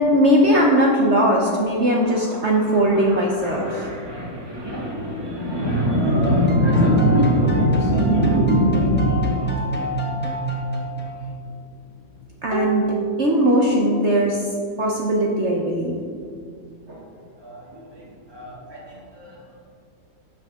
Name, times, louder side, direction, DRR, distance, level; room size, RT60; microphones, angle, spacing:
voice 1, 0.0-3.7 12.4-12.9 13.2-14.4 14.8-15.9 16.9-17.0, equal, 50° right, -1 dB, 0.9 m, -19 dB
voice 2, 1.8-10.6 11.3-11.7 11.9-13.1 17.3-19.5, equal, 15° right, -6 dB, 2.1 m, -23 dB
sound 1, 6.2-11.4, right 1 dB, 10° left, 0.7 m, -27 dB
sound 2, 12.5-14.2 14.4-14.5, right 2 dB, 80° left, 1.5 m, -31 dB
10.5 x 6.4 x 3.6 m, 2.3 s
omnidirectional pair, 1.9 m